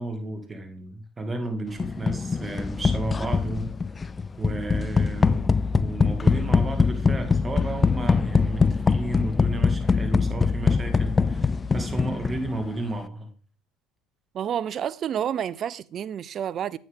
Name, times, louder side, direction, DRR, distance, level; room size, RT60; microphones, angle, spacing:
voice 1, 0.0-3.7 4.4-13.3, right 2 dB, 25° right, 2.3 m, -33 dB
sound 1, 1.8-12.7, left 4 dB, 25° left, 0.3 m, -23 dB
voice 2, 14.3-16.8, right 9 dB, 45° right, 0.4 m, -29 dB
8.6 x 7.7 x 3.6 m
hypercardioid pair, 70°, 0 cm